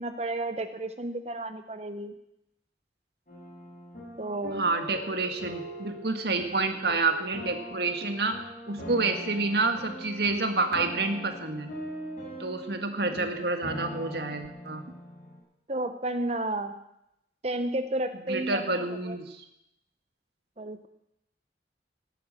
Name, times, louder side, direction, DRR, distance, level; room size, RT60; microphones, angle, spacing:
voice 1, 0.0-2.2 4.2-4.7 15.7-16.7 17.4-19.2 20.6-20.9, right 1 dB, 35° right, 9 dB, 0.8 m, -32 dB
sound 1, 3.3-15.4, equal, 45° left, 7.2 m, -41 dB
voice 2, 4.6-11.7 12.4-14.8 18.3-19.4, right 3 dB, 65° right, 6 dB, 1.8 m, -29 dB
17.5 x 9.3 x 7.6 m, 0.82 s
head